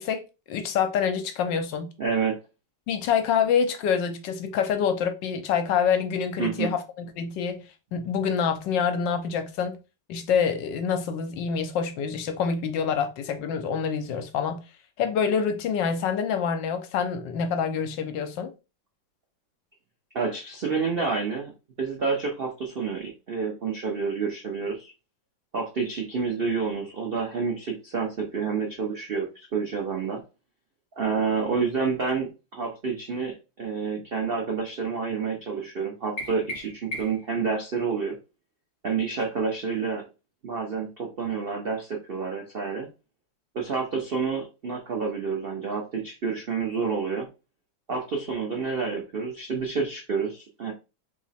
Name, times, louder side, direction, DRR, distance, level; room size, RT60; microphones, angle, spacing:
voice 1, 0.0-1.9 2.9-7.6 7.9-9.8 10.1-14.6 15.0-18.5, left 7 dB, 75° left, 1.3 m, -26 dB
voice 2, 2.0-2.4 6.4-6.7 20.1-21.5 21.8-24.9 25.5-30.2 31.0-38.2 38.8-40.0 40.4-42.9 43.5-47.3 47.9-50.7, right 5 dB, 75° right, 0.5 m, -29 dB
sound 1, 36.2-37.4, equal, 30° left, 1.6 m, -36 dB
3.4 x 2.9 x 4.1 m
omnidirectional pair, 2.1 m